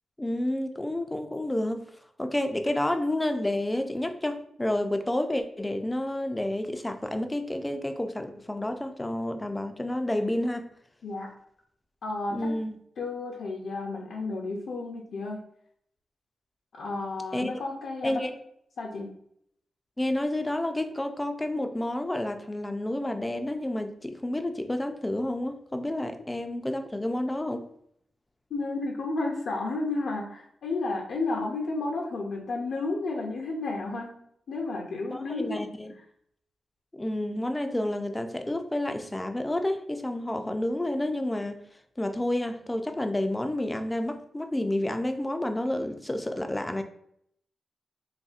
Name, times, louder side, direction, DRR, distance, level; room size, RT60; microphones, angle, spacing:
voice 1, 0.2-1.8 2.2-10.7 12.3-12.8 17.3-17.6 18.0-18.3 20.0-27.6 35.1-35.9 36.9-41.6 42.0-46.8, left 1 dB, 10° left, 7 dB, 0.3 m, -30 dB
voice 2, 12.0-12.5 13.0-15.4 16.7-18.3 18.8-19.1 28.5-34.2 34.5-35.6, left 3 dB, 70° left, -1 dB, 0.5 m, -32 dB
4.0 x 3.5 x 2.3 m, 0.70 s
wide cardioid pair, 155°, 0 cm